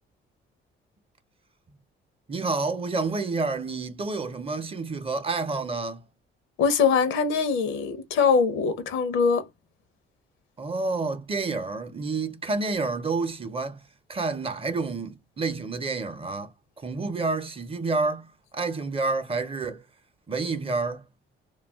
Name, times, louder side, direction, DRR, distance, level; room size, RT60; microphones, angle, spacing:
voice 1, 2.3-6.0 10.6-13.8 14.1-16.5 16.8-18.3 18.5-19.8 20.3-21.0, right 3 dB, 30° right, 0.6 m, -29 dB
voice 2, 6.6-9.5, left 5 dB, 85° left, 0.6 m, -22 dB
2.3 x 2.3 x 3.4 m
cardioid pair, 90°, 20 cm